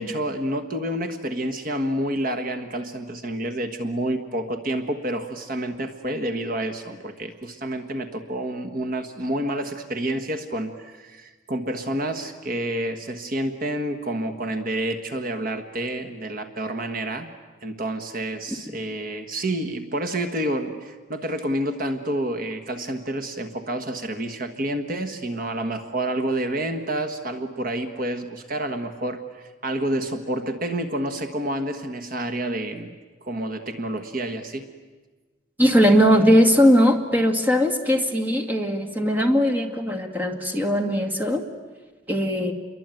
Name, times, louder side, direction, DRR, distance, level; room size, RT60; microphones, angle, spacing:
voice 1, 0.0-17.3 17.6-34.7, right 1 dB, 45° right, 8 dB, 1.5 m, -29 dB
voice 2, 35.6-41.4 42.1-42.5, equal, 10° right, 5 dB, 2.1 m, -19 dB
28.5 x 23.0 x 9.1 m, 1.3 s
head